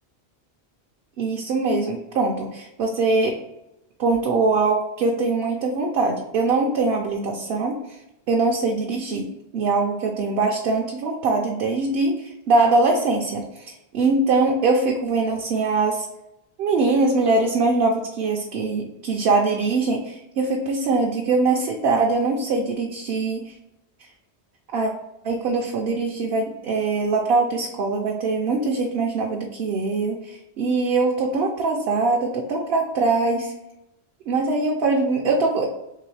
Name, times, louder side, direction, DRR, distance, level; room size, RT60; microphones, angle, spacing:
voice 1, 1.2-3.3 4.0-7.8 8.3-16.1 16.6-23.5 24.7-24.9 25.2-33.5 34.3-35.6, right 3 dB, 70° right, 0 dB, 0.8 m, -22 dB
3.8 x 3.1 x 3.2 m, 0.91 s
omnidirectional pair, 1.1 m